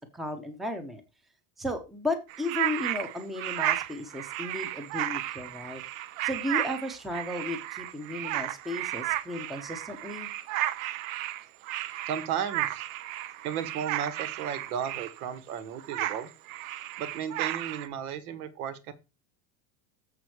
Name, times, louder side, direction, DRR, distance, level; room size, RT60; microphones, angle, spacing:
voice 1, 0.1-1.0 1.6-5.8 6.2-10.3, left 2 dB, ahead, 7 dB, 0.6 m, -34 dB
sound 1, 2.3-15.4 15.7-17.9, right 14 dB, 70° right, 0.8 m, -33 dB
voice 2, 12.1-12.8 13.4-16.3 17.0-18.9, right 8 dB, 85° right, 12 dB, 1.6 m, -34 dB
7.2 x 6.1 x 4.7 m, 0.27 s
cardioid pair, 175°, 43 cm